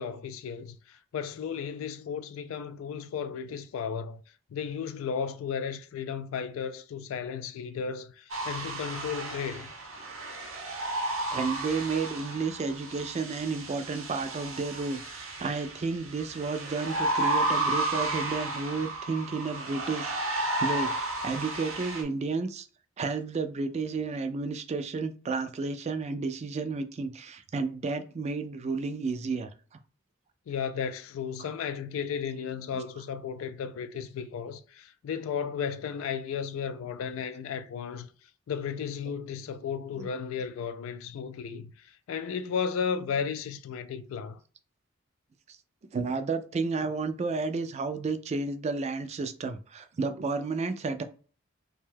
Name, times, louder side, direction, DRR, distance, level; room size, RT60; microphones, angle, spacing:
voice 1, 0.0-4.2 4.5-9.7 30.5-38.1 38.5-44.4, left 7 dB, 90° left, 0.3 m, -34 dB
sound 1, 8.3-22.0, right 2 dB, 75° right, 0.8 m, -33 dB
voice 2, 11.3-20.9 21.2-22.7 23.0-29.5 31.4-31.5 32.7-32.8 40.0-40.1 45.5-45.6 45.9-51.0, right 4 dB, 35° right, 0.3 m, -32 dB
2.7 x 2.2 x 3.3 m
head